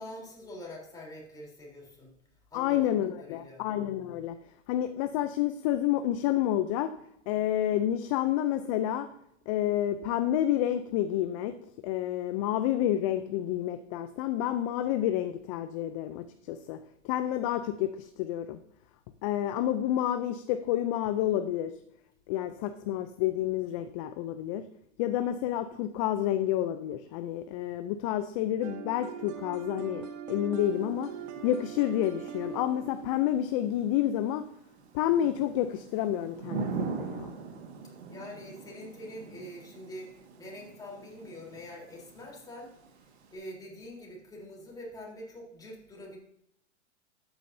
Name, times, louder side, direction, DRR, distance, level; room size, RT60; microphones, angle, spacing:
voice 1, 0.0-2.2 2.5-3.7 38.1-42.7 43.3-46.2, left 1 dB, 10° left, -3 dB, 3.6 m, -45 dB
voice 2, 2.5-4.4 4.7-6.9 7.3-9.1 9.5-11.6 11.8-18.6 19.2-21.7 22.3-24.6 25.0-31.1 31.4-34.4 34.9-37.3, left 12 dB, 30° left, 10 dB, 0.4 m, -29 dB
sound 1, 28.6-34.4, right 7 dB, 35° right, 1.0 m, -42 dB
Thunder / Rain, 30.6-43.4, right 5 dB, 60° right, 1.8 m, -43 dB
13.0 x 8.9 x 2.7 m, 0.75 s
hypercardioid pair, 130°, 35 cm